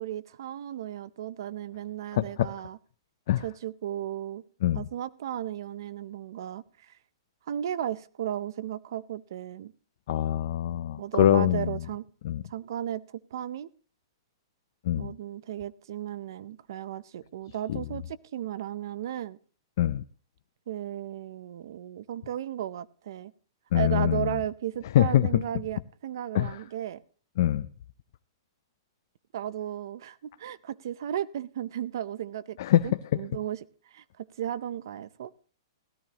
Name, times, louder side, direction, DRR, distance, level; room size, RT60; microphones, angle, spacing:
voice 1, 0.0-2.8 3.4-4.4 4.7-6.9 7.5-9.7 11.0-12.0 12.5-13.0 13.3-13.7 15.0-19.4 20.7-23.3 23.7-27.0 29.3-32.6 32.8-33.6 33.9-35.3, right 11 dB, 60° right, 0.5 m, -35 dB
voice 2, 2.1-2.5 3.3-3.4 4.6-4.9 10.1-11.8 12.2-12.4 14.8-15.1 17.7-17.8 19.8-20.0 23.7-24.3 24.9-25.4 26.3-26.6 27.4-27.7 32.6-32.9, left 12 dB, 50° left, 0.5 m, -24 dB
16.5 x 13.0 x 2.9 m
hypercardioid pair, 165°, 2 cm